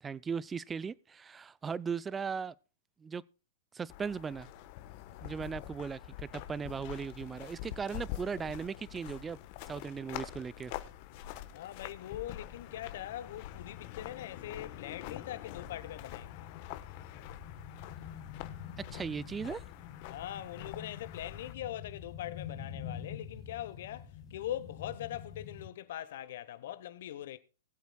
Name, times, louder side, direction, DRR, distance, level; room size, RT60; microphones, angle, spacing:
voice 1, 0.0-2.5 3.0-3.2 3.7-4.5 5.2-9.4 9.7-10.7 18.9-19.6, right 6 dB, 15° right, 0.4 m, -38 dB
sound 1, 3.9-21.5, left 12 dB, 45° left, 1.2 m, -46 dB
sound 2, 8.1-25.7, left 8 dB, 25° left, 3.7 m, -48 dB
voice 2, 11.5-16.5 20.1-27.4, left 12 dB, 60° left, 1.1 m, -42 dB
21.0 x 8.1 x 2.3 m
hypercardioid pair, 135°, 0 cm